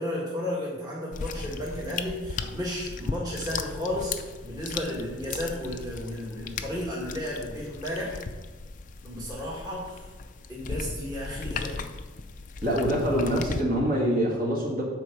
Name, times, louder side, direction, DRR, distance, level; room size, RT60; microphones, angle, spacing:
voice 1, 0.0-8.2 9.0-10.0 10.5-11.8, left 1 dB, 20° right, -6 dB, 1.7 m, -33 dB
sound 1, 1.1-13.6, left 4 dB, 40° left, 0.4 m, -37 dB
voice 2, 12.6-14.8, equal, 45° right, -3 dB, 2.0 m, -25 dB
9.0 x 4.5 x 6.7 m, 1.3 s
head